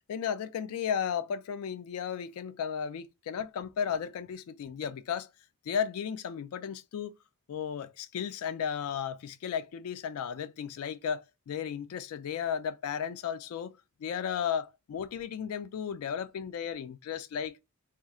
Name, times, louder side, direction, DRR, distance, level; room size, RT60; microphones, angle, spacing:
voice 1, 0.1-5.3 5.7-7.1 7.5-13.7 14.0-17.6, left 8 dB, 70° left, 0.3 m, -34 dB
3.6 x 2.3 x 4.1 m
head